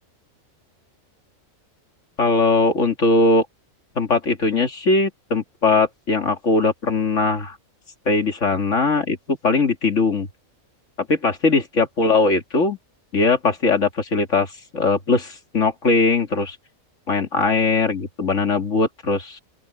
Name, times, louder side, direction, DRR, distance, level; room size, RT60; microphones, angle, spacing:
voice 1, 2.2-3.5 4.0-7.6 8.1-10.3 11.0-12.8 13.1-16.6 17.1-19.4, left 3 dB, 60° left, 2.6 m, -20 dB
open air
omnidirectional pair, 1.5 m